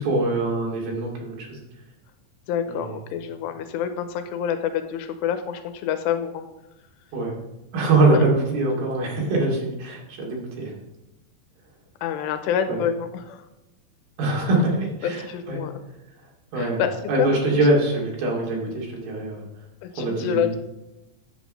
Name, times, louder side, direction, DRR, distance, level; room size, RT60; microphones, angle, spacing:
voice 1, 0.0-1.6 2.7-3.0 7.1-7.3 7.7-10.7 12.7-12.8 14.2-15.6 16.5-16.8 17.1-19.4 19.9-20.5, right 2 dB, 60° right, -2 dB, 4.0 m, -23 dB
voice 2, 2.5-6.5 8.1-8.2 12.0-13.5 15.0-15.8 16.5-17.6 19.8-20.6, left 8 dB, 85° left, 8 dB, 2.9 m, -27 dB
10.5 x 8.2 x 5.2 m, 0.94 s
omnidirectional pair, 4.9 m